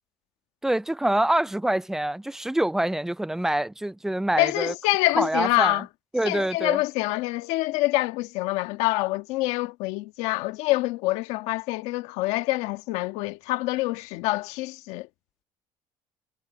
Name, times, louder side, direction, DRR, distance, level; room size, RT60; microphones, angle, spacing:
voice 1, 0.6-4.7 5.2-5.8 6.1-6.8, right 1 dB, 5° right, 0.3 m, -25 dB
voice 2, 4.4-5.8 6.2-15.1, left 19 dB, 90° left, 1.5 m, -26 dB
cardioid pair, 115°, 11 cm